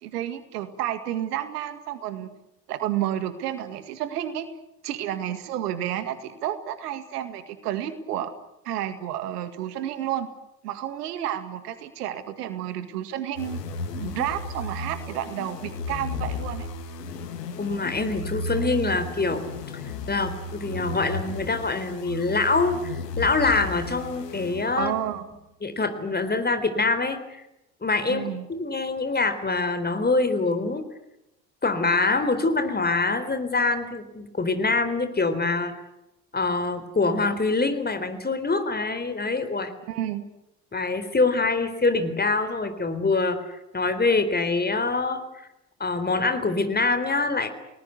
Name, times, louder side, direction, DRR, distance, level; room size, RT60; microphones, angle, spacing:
voice 1, 0.0-2.3 2.7-4.5 4.8-8.3 8.6-10.3 10.6-13.6 14.0-16.7 24.8-25.3 28.1-28.5 39.8-40.2, right 11 dB, 70° right, 11 dB, 2.1 m, -31 dB
sound 1, 13.4-25.1, left 2 dB, 75° left, 2.2 m, -34 dB
voice 2, 17.6-19.4 20.1-25.0 25.6-27.2 27.8-30.8 31.6-35.7 36.3-39.7 40.7-43.4 43.7-45.2 45.8-47.5, left 3 dB, 20° left, 10 dB, 3.8 m, -24 dB
30.0 x 19.5 x 8.3 m, 0.88 s
figure-of-eight pair, 55°, 49 cm